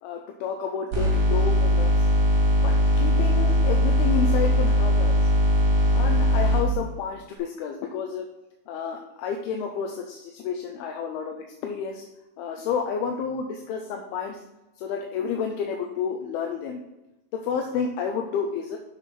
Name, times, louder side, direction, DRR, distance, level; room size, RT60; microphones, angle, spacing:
voice 1, 0.0-2.1 2.6-5.3 5.9-8.3 8.7-12.0 12.4-14.4 14.8-16.8 17.3-18.8, left 6 dB, 85° left, 3 dB, 2.6 m, -30 dB
sound 1, 0.9-6.6, equal, 45° right, 2.4 m, -20 dB
6.8 x 6.3 x 4.2 m, 0.97 s
omnidirectional pair, 4.4 m